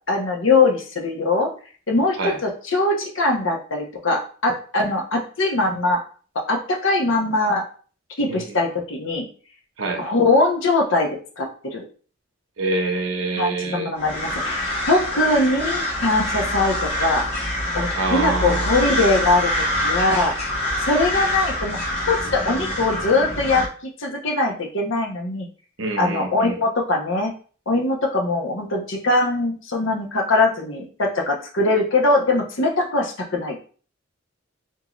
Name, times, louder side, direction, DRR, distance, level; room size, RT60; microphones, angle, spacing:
voice 1, 0.1-1.5 1.9-6.0 6.5-7.6 8.2-9.3 10.0-11.1 11.4-11.8 13.4-17.2 17.7-20.3 20.9-21.8 22.1-23.7 24.0-25.5 26.0-27.3 27.7-33.6, left 2 dB, 70° left, 1 dB, 0.9 m, -21 dB
voice 2, 12.6-13.9 17.9-18.8 25.8-26.6, right 3 dB, 75° right, 4 dB, 0.8 m, -25 dB
sound 1, 14.0-23.7, left 1 dB, 30° left, 0.9 m, -25 dB
3.7 x 2.8 x 3.0 m, 0.41 s
head